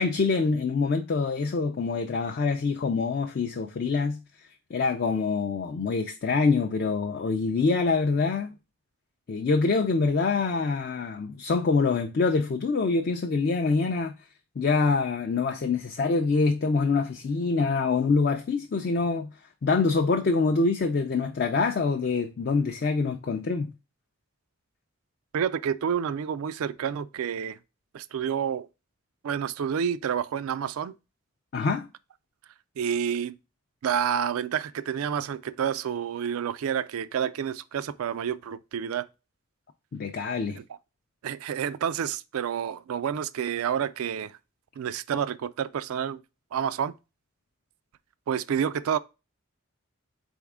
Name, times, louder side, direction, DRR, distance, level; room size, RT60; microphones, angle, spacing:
voice 1, 0.0-4.2 4.7-8.5 9.3-14.1 14.6-19.3 19.6-23.7 31.5-31.9 39.9-40.6, left 4 dB, 45° left, 0.4 m, -25 dB
voice 2, 25.3-27.6 27.9-28.7 29.2-30.9 32.8-33.4 33.8-39.1 40.5-40.6 41.2-44.3 44.8-46.2 46.5-46.9 48.3-49.0, right 8 dB, 85° right, 0.3 m, -29 dB
4.2 x 3.5 x 3.5 m
head